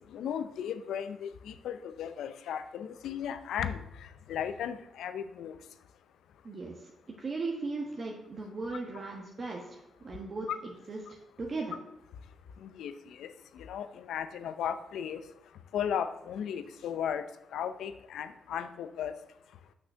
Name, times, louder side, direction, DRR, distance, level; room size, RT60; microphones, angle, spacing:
voice 1, 0.1-5.6 10.5-10.6 12.6-15.2 15.7-19.1, left 8 dB, 85° left, 11 dB, 0.6 m, -36 dB
voice 2, 6.4-11.7, right 3 dB, 45° right, -1 dB, 1.3 m, -38 dB
6.3 x 6.0 x 6.2 m, 0.87 s
cardioid pair, 75°, 0 cm